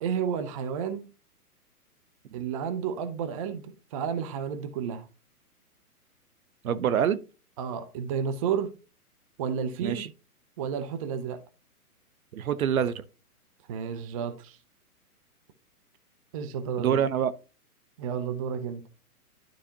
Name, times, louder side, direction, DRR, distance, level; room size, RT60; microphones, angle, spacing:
voice 1, 0.0-1.1 2.3-5.1 7.6-8.7 9.4-10.1 10.6-11.4 13.7-14.6 16.3-17.0 18.0-18.8, right 7 dB, 25° right, 0.5 m, -31 dB
voice 2, 6.6-7.2 9.8-10.1 12.3-13.0 16.8-17.3, right 8 dB, 65° right, 0.8 m, -25 dB
11.5 x 4.1 x 2.8 m
hypercardioid pair, 125°, 46 cm